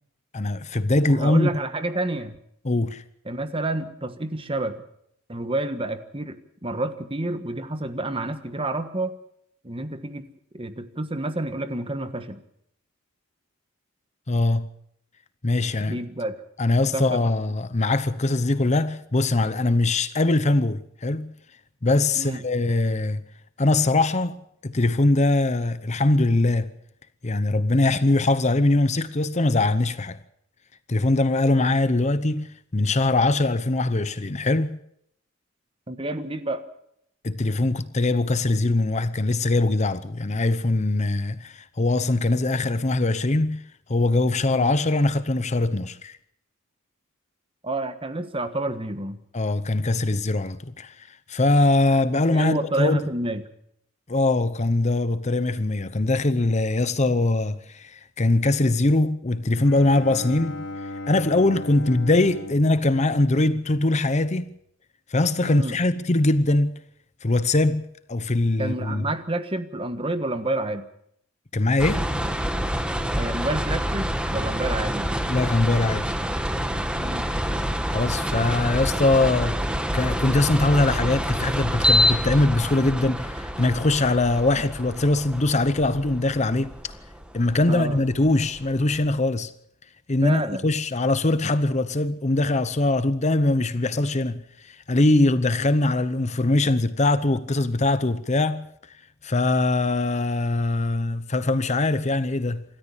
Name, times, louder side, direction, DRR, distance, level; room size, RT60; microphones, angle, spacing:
voice 1, 0.3-1.5 2.6-3.0 14.3-14.7 15.4-16.0 16.6-21.3 21.8-23.2 23.6-26.7 27.2-30.2 30.9-34.8 37.2-43.6 43.9-46.2 49.3-53.0 54.1-60.7 61.1-64.5 65.1-66.7 67.2-69.0 71.5-72.1 75.3-76.2 77.9-79.6 79.9-86.7 87.3-89.5 90.1-98.7 99.2-102.6, left 2 dB, 35° left, 0.8 m, -22 dB
voice 2, 1.1-2.4 3.2-4.8 5.3-9.2 9.6-10.3 10.5-12.4 15.9-16.4 16.9-17.2 22.2-22.4 35.9-36.6 47.6-49.2 52.3-53.5 65.4-65.8 68.6-70.9 73.2-75.1 77.0-77.3 87.5-88.0 90.2-90.7, right 2 dB, 25° right, 1.3 m, -29 dB
Bowed string instrument, 59.6-64.0, left 2 dB, 60° left, 2.6 m, -37 dB
sound 1, 71.8-89.0, equal, 5° right, 1.3 m, -27 dB
26.5 x 13.5 x 7.3 m
head